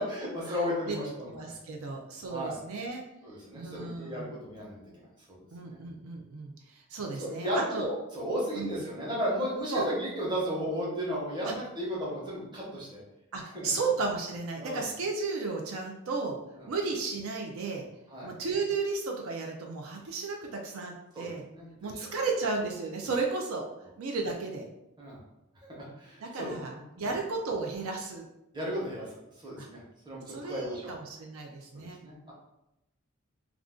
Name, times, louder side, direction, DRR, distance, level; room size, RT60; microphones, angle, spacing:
voice 1, 0.0-1.6 2.2-2.6 3.2-5.8 7.2-13.0 13.4-13.7 14.6-14.9 16.6-16.7 18.1-18.3 21.1-21.9 25.0-25.2 25.7-26.8 28.5-30.9 31.7-32.3, equal, 20° right, -5 dB, 0.8 m, -35 dB
voice 2, 1.3-3.0 3.6-4.3 5.5-6.5 6.9-7.9 8.6-8.7 9.7-9.9 11.4-11.5 13.3-16.4 16.7-17.9 18.2-21.4 21.8-23.6 24.0-24.6 26.2-28.3 29.6-29.7 30.3-32.0, right 4 dB, 75° right, 1 dB, 0.4 m, -34 dB
2.4 x 2.3 x 3.6 m, 0.88 s
head